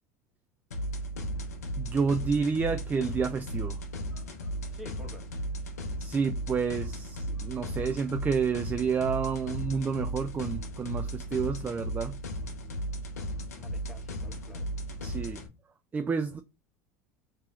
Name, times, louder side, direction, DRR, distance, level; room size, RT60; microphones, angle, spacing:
sound 1, 0.7-15.5, equal, 90° left, 0.6 m, -36 dB
voice 1, 1.8-3.8 6.0-12.1 15.0-15.4 15.9-16.4, right 5 dB, 20° right, 0.3 m, -29 dB
voice 2, 4.7-5.3 13.5-15.2, left 1 dB, 5° right, 1.2 m, -50 dB
4.5 x 3.0 x 2.3 m
hypercardioid pair, 85°, 8 cm